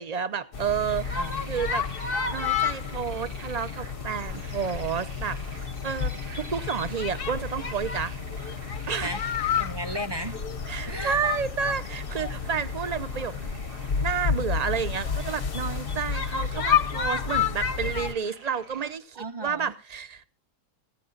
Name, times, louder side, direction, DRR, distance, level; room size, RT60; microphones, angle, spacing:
voice 1, 0.0-1.1 1.5-1.8 2.3-8.1 8.9-9.1 10.7-13.6 14.0-20.2, right 7 dB, 40° right, 0.6 m, -30 dB
sound 1, 0.5-18.1, left 7 dB, 45° left, 0.8 m, -30 dB
sound 2, 0.5-19.0, right 4 dB, 85° right, 2.3 m, -48 dB
voice 2, 1.1-1.6 9.0-9.2 9.6-10.4 10.8-11.2 19.1-19.7, right 1 dB, 20° right, 0.9 m, -35 dB
17.0 x 15.5 x 2.5 m
omnidirectional pair, 1.7 m